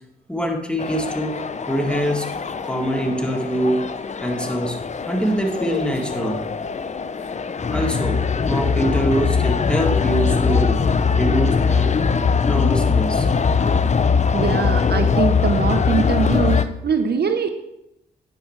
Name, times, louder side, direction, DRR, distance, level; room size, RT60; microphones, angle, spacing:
voice 1, 0.3-2.3 2.6-3.9 4.2-4.8 5.1-6.5 7.6-10.8 11.2-12.0 12.5-13.3, right 1 dB, 5° left, 2 dB, 2.1 m, -24 dB
sound 1, 0.8-16.7, left 5 dB, 35° left, 0.7 m, -21 dB
voice 2, 14.3-17.5, right 5 dB, 55° right, 7 dB, 1.0 m, -22 dB
9.7 x 8.7 x 3.3 m, 0.84 s
hypercardioid pair, 40°, 20 cm